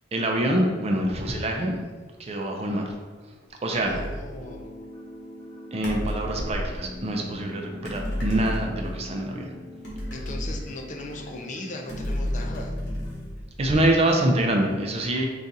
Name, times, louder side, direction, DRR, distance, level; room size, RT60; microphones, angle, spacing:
voice 1, 0.1-1.8 2.2-2.9 3.6-4.0 5.7-9.5 13.6-15.3, right 1 dB, 30° right, 2 dB, 0.4 m, -25 dB
sound 1, 3.8-4.3 5.8-6.8 7.8-9.1 9.8-11.2 11.9-13.8, equal, 60° left, 1.2 m, -32 dB
voice 2, 3.9-4.7 10.1-12.8, left 2 dB, 40° left, 2 dB, 0.4 m, -38 dB
sound 2, 4.3-13.2, left 1 dB, 15° left, 1.5 m, -42 dB
4.0 x 2.4 x 3.9 m, 1.4 s
head